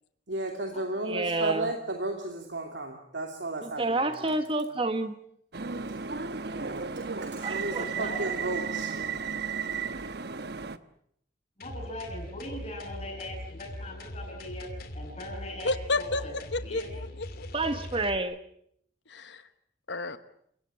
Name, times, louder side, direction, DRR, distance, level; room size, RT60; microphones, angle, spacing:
voice 1, 0.3-4.3 6.4-6.9 7.2-8.9, right 2 dB, 80° right, 2 dB, 2.7 m, -34 dB
voice 2, 1.0-1.7 3.6-5.1 7.4-8.1 17.5-18.4, right 2 dB, 30° right, 9 dB, 1.4 m, -29 dB
sound 1, 5.5-10.8, right 5 dB, 60° right, 1.1 m, -34 dB
voice 3, 7.5-8.3 8.7-9.2 11.6-14.7 14.9-17.0, left 1 dB, 35° left, -6 dB, 7.1 m, -41 dB
sound 2, 11.6-18.2, left 1 dB, 55° left, 2.7 m, -41 dB
voice 4, 15.6-17.5 19.1-19.4 19.9-20.2, left 2 dB, 80° left, 11 dB, 1.2 m, -31 dB
29.5 x 17.5 x 8.6 m, 0.69 s
head